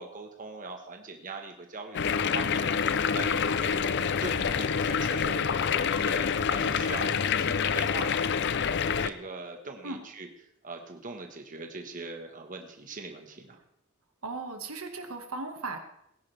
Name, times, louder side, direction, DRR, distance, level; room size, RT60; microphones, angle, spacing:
voice 1, 0.0-8.4 9.0-10.3 10.6-13.6, right 3 dB, 40° right, 3 dB, 1.4 m, -41 dB
sound 1, 1.9-9.1, left 6 dB, 55° left, 0.5 m, -27 dB
voice 2, 14.2-15.8, right 3 dB, 85° right, 5 dB, 1.8 m, -37 dB
18.5 x 10.5 x 3.4 m, 0.75 s
head